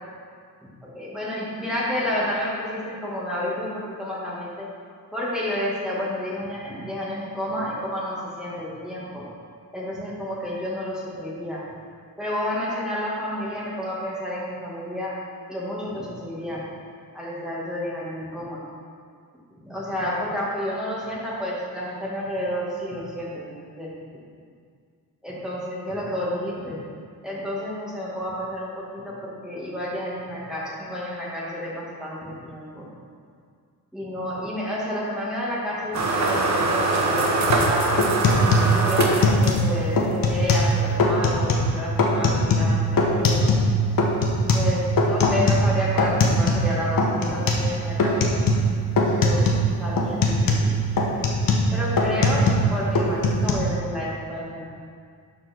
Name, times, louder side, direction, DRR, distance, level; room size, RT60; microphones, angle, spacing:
voice 1, 0.8-4.7 5.1-9.2 9.7-11.6 12.2-15.2 15.5-16.6 17.1-18.6 19.6-23.9 25.2-26.8 27.2-32.9 33.9-37.9 38.7-43.6 44.5-48.3 49.1-49.5 49.8-50.8 51.7-54.6, left 1 dB, ahead, -7 dB, 2.4 m, -30 dB
sound 1, 35.9-39.9, right 2 dB, 50° right, 1.3 m, -23 dB
sound 2, 37.5-37.7 38.0-39.7 40.0-40.7 41.0-41.7 42.0-43.7 44.0-46.7 47.0-47.7 48.0-48.7 49.0-49.7 50.0-52.7 52.9-53.5, left 2 dB, 65° left, 1.3 m, -20 dB
12.0 x 4.8 x 4.7 m, 2.1 s
cardioid pair, 95°, 36 cm